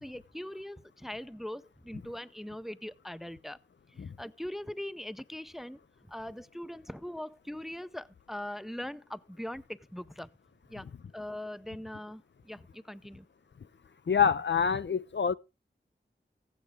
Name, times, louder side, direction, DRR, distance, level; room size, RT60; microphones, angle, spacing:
voice 1, 0.0-3.6 3.9-5.8 6.1-10.3 10.7-10.9 11.1-13.3, left 1 dB, ahead, 0.5 m, -41 dB
voice 2, 14.1-15.3, left 7 dB, 60° left, 0.5 m, -26 dB
15.0 x 8.5 x 3.5 m
wide cardioid pair, 50°, 21 cm